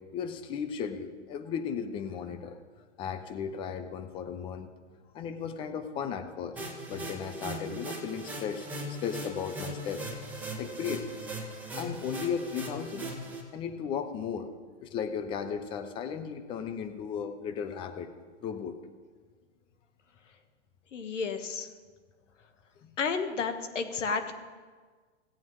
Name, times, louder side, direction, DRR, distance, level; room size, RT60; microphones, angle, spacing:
voice 1, 0.0-2.6 3.0-4.7 5.1-6.6 6.9-10.0 10.6-11.1 11.7-13.1 13.5-14.5 14.8-18.1 18.4-18.7 22.8-22.9, left 7 dB, 15° left, 8 dB, 0.5 m, -35 dB
sound 1, 6.6-13.4, right 1 dB, 5° right, 1.7 m, -39 dB
voice 2, 20.9-21.7 23.0-24.3, left 5 dB, 75° left, 8 dB, 1.4 m, -31 dB
17.0 x 8.6 x 3.1 m, 1.5 s
hypercardioid pair, 135°, 37 cm